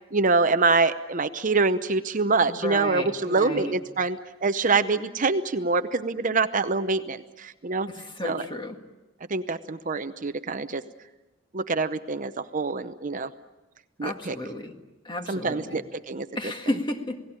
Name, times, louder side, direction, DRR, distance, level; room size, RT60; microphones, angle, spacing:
voice 1, 0.1-7.9 8.2-8.4 9.3-10.8 11.5-13.3 14.0-14.4 15.3-16.3, right 3 dB, 40° right, 10 dB, 0.7 m, -25 dB
voice 2, 2.5-3.7 7.9-8.8 14.0-14.7 15.0-15.8 16.4-17.2, left 1 dB, 25° left, 5 dB, 1.9 m, -32 dB
28.5 x 18.0 x 8.8 m, 1.1 s
head